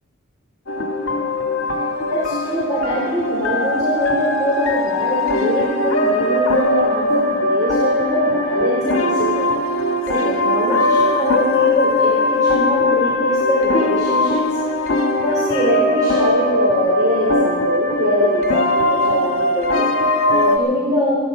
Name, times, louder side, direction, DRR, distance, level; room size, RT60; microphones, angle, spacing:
sound 1, 0.7-20.6, left 1 dB, 65° left, 1.7 m, -19 dB
voice 1, 2.1-9.5 10.1-21.1, left 1 dB, 15° right, -8 dB, 4.5 m, -23 dB
20.0 x 14.5 x 5.0 m, 1.4 s
head